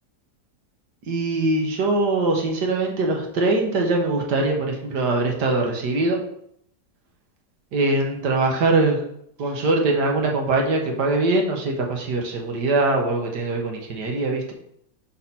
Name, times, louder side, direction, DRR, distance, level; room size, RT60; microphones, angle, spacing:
voice 1, 1.1-6.2 7.7-9.0 9.4-14.5, right 2 dB, 65° right, 1 dB, 1.7 m, -22 dB
5.0 x 4.2 x 5.8 m, 0.71 s
omnidirectional pair, 2.0 m